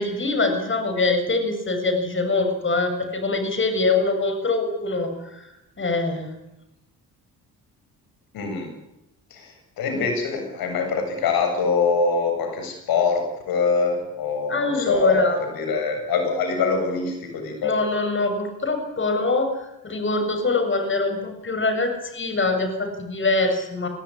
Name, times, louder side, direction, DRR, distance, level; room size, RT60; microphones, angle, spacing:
voice 1, 0.0-6.3 14.5-15.4 17.6-23.9, left 3 dB, 35° left, 7 dB, 7.1 m, -24 dB
voice 2, 8.3-8.7 9.3-17.7, left 5 dB, 80° left, 5 dB, 7.8 m, -24 dB
25.0 x 19.5 x 10.0 m, 0.88 s
cardioid pair, 80°, 35 cm